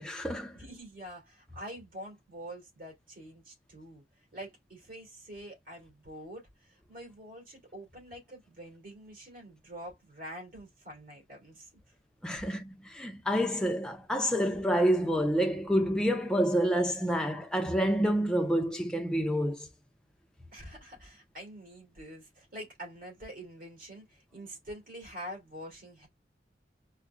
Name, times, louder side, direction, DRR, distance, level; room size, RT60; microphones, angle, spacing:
voice 1, 0.0-0.6 12.2-19.7, equal, 5° left, 0.4 m, -28 dB
voice 2, 0.5-11.9 20.5-26.1, equal, 50° right, 2.4 m, -46 dB
4.8 x 2.1 x 2.4 m
head